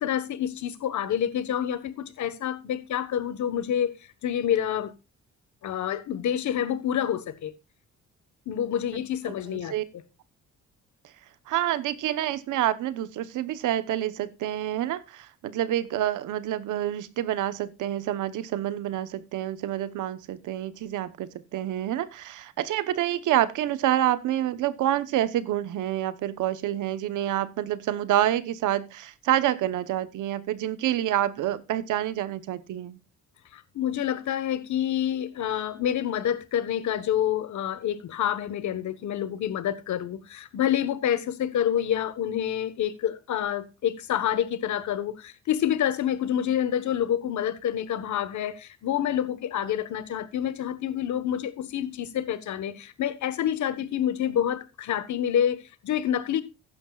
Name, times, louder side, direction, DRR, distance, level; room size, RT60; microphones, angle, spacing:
voice 1, 0.0-3.9 4.2-4.9 5.6-7.5 8.5-9.7 33.5-56.4, left 10 dB, 70° left, 1.3 m, -28 dB
voice 2, 9.3-9.8 11.5-33.0, right 12 dB, 85° right, 1.1 m, -28 dB
15.0 x 11.5 x 2.4 m
cardioid pair, 90°, 30 cm